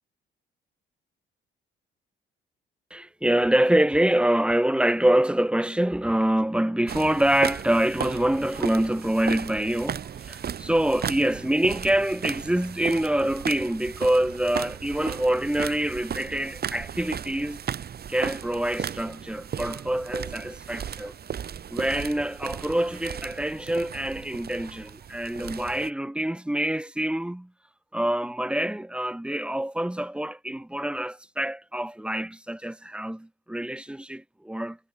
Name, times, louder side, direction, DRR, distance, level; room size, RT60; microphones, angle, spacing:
voice 1, 2.9-10.0 10.3-17.6 18.1-21.1 21.7-27.5 27.9-34.8, right 1 dB, 5° right, 1.4 m, -25 dB
sound 1, 6.9-25.9, right 8 dB, 50° right, 2.1 m, -36 dB
cardioid pair, 90°, 20 cm